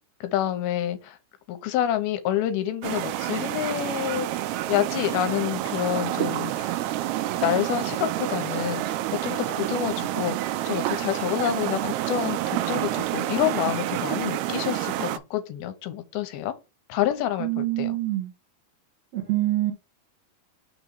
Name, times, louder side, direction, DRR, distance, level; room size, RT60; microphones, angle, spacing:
voice 1, 0.2-1.2 1.5-6.8 7.4-16.5 16.9-18.0, left 11 dB, 80° left, 2.6 m, -28 dB
sound 1, 2.8-15.2, right 14 dB, 90° right, 2.6 m, -28 dB
voice 2, 17.4-18.3 19.1-19.7, right 16 dB, 65° right, 1.8 m, -25 dB
6.1 x 3.0 x 5.2 m
omnidirectional pair, 4.5 m